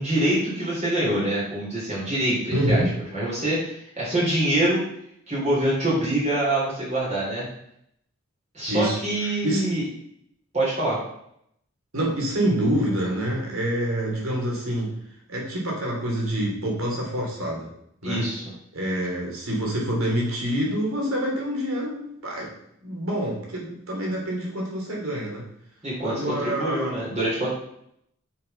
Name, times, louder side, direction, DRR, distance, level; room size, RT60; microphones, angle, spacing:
voice 1, 0.0-2.8 3.1-4.8 5.3-7.5 8.5-9.8 10.5-11.0 18.0-18.4 25.8-27.5, right 1 dB, 35° right, -7 dB, 3.8 m, -25 dB
voice 2, 2.5-2.9 8.7-9.7 11.9-15.0 15.3-17.7 18.0-18.3 18.7-22.5 22.8-25.5 26.0-27.0, equal, 90° right, -2 dB, 3.2 m, -26 dB
7.6 x 5.9 x 5.6 m, 0.73 s
head